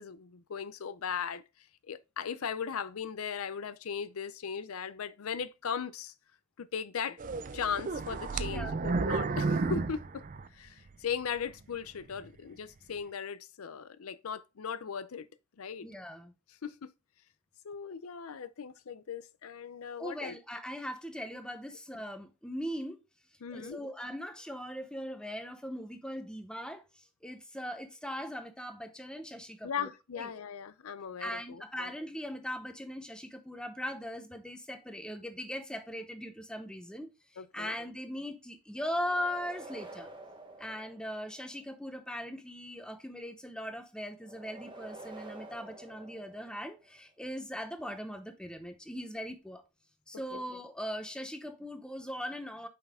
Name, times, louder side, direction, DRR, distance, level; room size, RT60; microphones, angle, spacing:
voice 1, 0.0-1.4 1.9-6.1 6.6-7.2 7.5-10.2 10.5-15.3 15.6-15.9 16.6-16.9 17.6-20.4 23.4-23.8 29.6-31.9 37.4-37.8 50.3-50.4, left 7 dB, 85° left, 0.5 m, -38 dB
sound 1, 7.2-10.9 11.4-11.5 12.1-12.2, right 4 dB, 40° right, 0.4 m, -32 dB
voice 2, 15.8-16.3 20.0-23.0 23.5-29.9 30.2-30.4 31.2-40.1 40.6-49.6 50.1-52.7, equal, 5° left, 0.7 m, -40 dB
sound 2, 38.9-41.6 44.2-46.9, right 2 dB, 20° right, 1.1 m, -49 dB
5.7 x 5.5 x 3.6 m
head